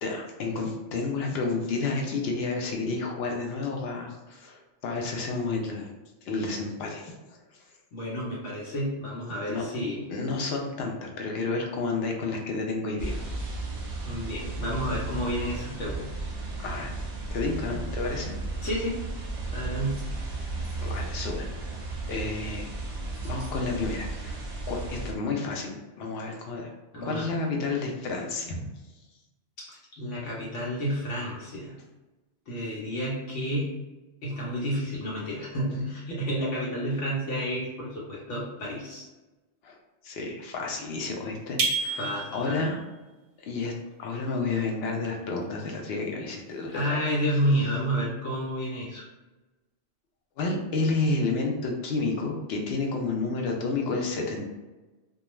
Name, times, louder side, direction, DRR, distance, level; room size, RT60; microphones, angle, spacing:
voice 1, 0.0-5.9 6.2-7.1 9.5-9.6 10.1-13.1 16.6-17.0 17.3-18.3 20.8-21.5 22.1-22.7 23.2-24.4 24.7-26.7 27.0-28.7 39.6-39.8 40.0-42.8 43.4-43.7 44.0-47.0 50.4-54.4, left 3 dB, 65° left, 1 dB, 0.7 m, -30 dB
voice 2, 7.9-10.0 14.0-16.1 18.6-19.0 19.5-20.0 26.9-27.3 29.6-31.8 32.5-33.7 34.2-39.1 42.0-42.6 46.7-49.0, equal, 85° left, -5 dB, 1.0 m, -30 dB
sound 1, 13.0-25.1, right 2 dB, 45° right, 0.6 m, -34 dB
sound 2, 41.6-42.7, right 4 dB, 90° right, 0.9 m, -29 dB
2.3 x 2.2 x 3.0 m, 1.1 s
omnidirectional pair, 1.2 m